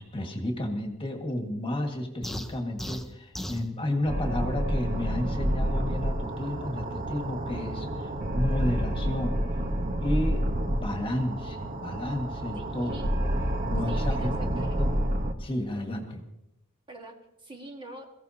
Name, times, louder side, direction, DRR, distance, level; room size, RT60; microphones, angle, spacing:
voice 1, 0.0-9.3 10.0-10.4 10.7-13.0 13.6-14.9 15.4-16.2, left 1 dB, 25° left, 3 dB, 1.7 m, -32 dB
sound 1, 2.2-3.7, equal, ahead, 0.6 m, -36 dB
sound 2, 4.1-15.3, equal, 40° right, 1.1 m, -29 dB
voice 2, 12.5-13.1 13.9-14.8 16.9-18.1, right 1 dB, 25° right, 2 dB, 1.5 m, -44 dB
22.5 x 15.5 x 2.8 m, 0.87 s
head